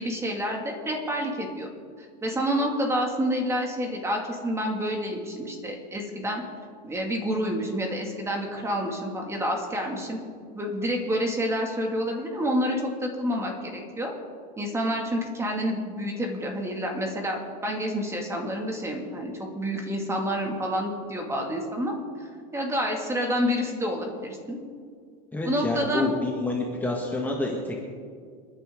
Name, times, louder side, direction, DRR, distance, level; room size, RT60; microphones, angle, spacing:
voice 1, 0.0-1.7 2.2-6.4 6.8-10.2 10.5-14.1 14.6-21.9 22.5-24.6 25.4-26.1, equal, 15° right, 1 dB, 2.4 m, -28 dB
voice 2, 25.3-27.9, left 2 dB, 10° left, -2 dB, 1.8 m, -28 dB
28.5 x 10.0 x 3.9 m, 2.1 s
supercardioid pair, 135°, 21 cm